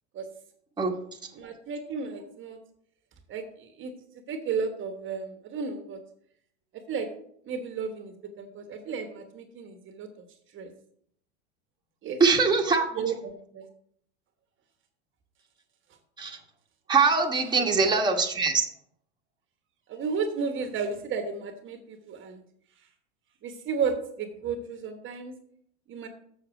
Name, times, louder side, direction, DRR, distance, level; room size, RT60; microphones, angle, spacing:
voice 1, 1.3-2.6 3.3-3.9 4.3-6.0 6.9-7.1 7.4-10.1 10.5-10.7 12.0-12.2 13.0-13.7 17.6-17.7 19.9-22.4 23.4-25.3 25.9-26.1, right 5 dB, 35° right, 7 dB, 1.1 m, -33 dB
voice 2, 12.2-13.0 16.2-16.4 16.9-18.6, right 4 dB, 10° right, 1 dB, 1.2 m, -22 dB
7.0 x 6.8 x 4.9 m, 0.67 s
hypercardioid pair, 100°, 34 cm